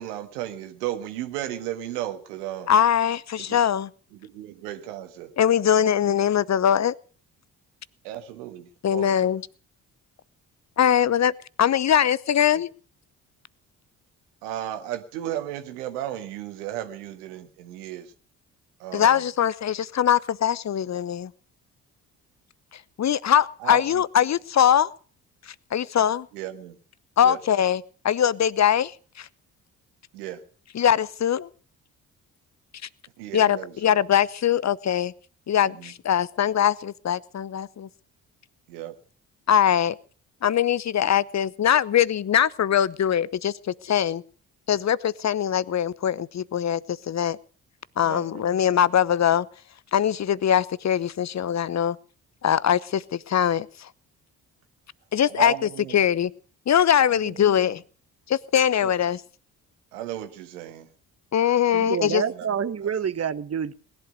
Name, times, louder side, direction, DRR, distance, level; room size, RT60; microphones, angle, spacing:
voice 1, 0.0-2.7 3.4-3.6 4.1-5.3 8.0-9.4 12.5-12.6 14.4-18.1 18.8-19.3 23.6-24.0 26.3-26.8 27.2-27.4 30.1-30.4 33.2-33.9 35.6-35.9 38.7-39.0 48.0-48.4 55.3-56.0 57.1-57.4 58.8-58.9 59.9-60.9 61.8-61.9 62.3-62.5 62.8-62.9, right 12 dB, 75° right, 8 dB, 1.7 m, -35 dB
voice 2, 2.7-3.9 5.4-6.9 8.8-9.4 10.8-11.3 11.6-12.7 18.9-21.3 22.7-24.9 25.5-26.3 27.2-29.3 30.7-31.5 33.3-35.1 35.5-37.9 39.5-40.0 40.4-44.2 44.7-47.4 48.0-49.5 49.9-52.0 52.4-53.9 55.1-55.5 55.9-56.3 56.7-57.8 58.3-59.2 61.3-62.2, left 9 dB, 35° left, 21 dB, 0.9 m, -22 dB
voice 3, 61.7-63.7, right 7 dB, 30° right, 15 dB, 1.2 m, -27 dB
20.0 x 11.5 x 5.2 m, 0.42 s
figure-of-eight pair, 40°, 47 cm